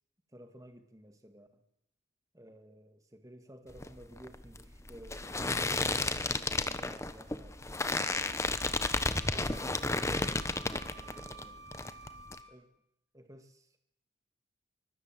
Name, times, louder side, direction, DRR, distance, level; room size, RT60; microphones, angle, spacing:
voice 1, 0.3-1.6 2.3-8.3 8.9-11.7 12.5-12.8 13.1-13.8, equal, 15° right, 7 dB, 1.8 m, -54 dB
sound 1, 3.7-11.4 11.7-12.4, left 2 dB, 15° left, 1.0 m, -33 dB
Wind instrument woodwind instrument, 8.5-12.6, right 3 dB, 60° right, 3.2 m, -52 dB
24.5 x 22.5 x 7.7 m, 0.78 s
head